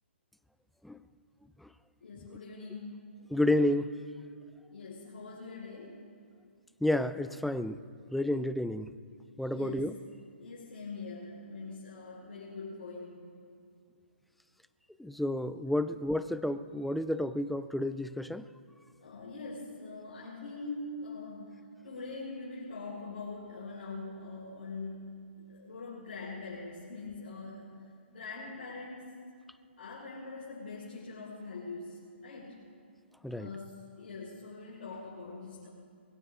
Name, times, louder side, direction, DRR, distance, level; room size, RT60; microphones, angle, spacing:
voice 1, 2.0-3.0 4.7-6.0 9.5-9.9 10.4-13.2 19.0-21.6 21.8-27.8 28.1-29.0 29.8-32.6 33.3-35.7, left 3 dB, 60° left, -9 dB, 5.5 m, -43 dB
voice 2, 3.3-3.9 6.8-7.8 8.1-8.9 9.4-9.9 15.0-18.4 33.2-33.5, left 1 dB, ahead, 13 dB, 0.4 m, -30 dB
22.0 x 16.5 x 3.8 m, 2.2 s
figure-of-eight pair, 130°, 6 cm